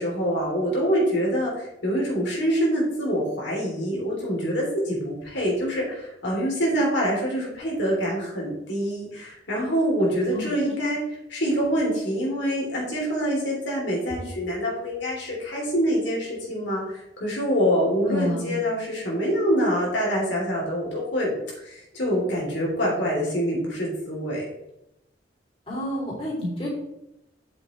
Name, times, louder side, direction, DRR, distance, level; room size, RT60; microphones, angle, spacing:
voice 1, 0.0-11.0 11.3-24.4, equal, 80° left, -3 dB, 3.2 m, -25 dB
voice 2, 10.3-10.7 18.0-18.5 25.7-26.7, left 1 dB, 30° left, -5 dB, 3.2 m, -29 dB
8.9 x 7.1 x 3.2 m, 0.85 s
head